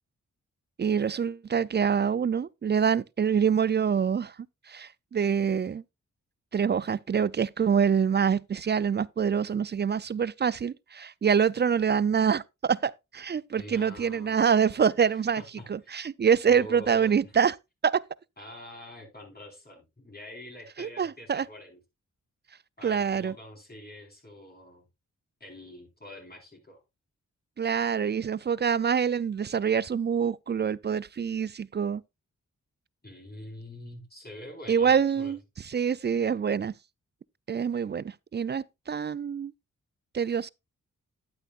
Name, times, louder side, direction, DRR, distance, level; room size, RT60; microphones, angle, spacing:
voice 1, 0.8-4.4 4.7-5.8 6.5-15.4 15.7-17.6 17.8-18.0 20.8-21.4 22.8-23.3 27.6-32.0 34.7-36.7 37.5-39.5 40.1-40.5, right 7 dB, 35° right, 0.4 m, -26 dB
voice 2, 13.5-16.0 16.5-17.1 18.4-21.8 22.8-24.8 25.4-26.8 33.0-35.3, left 1 dB, 30° left, 4.4 m, -46 dB
10.5 x 8.9 x 2.4 m
cardioid pair, 50°, 32 cm